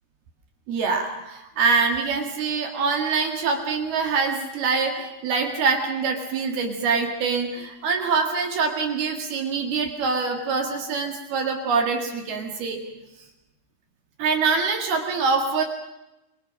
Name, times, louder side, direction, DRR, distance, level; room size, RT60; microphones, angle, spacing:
voice 1, 0.7-12.8 14.2-15.6, right 4 dB, 60° right, 3 dB, 3.5 m, -24 dB
26.0 x 22.5 x 6.2 m, 0.95 s
omnidirectional pair, 5.5 m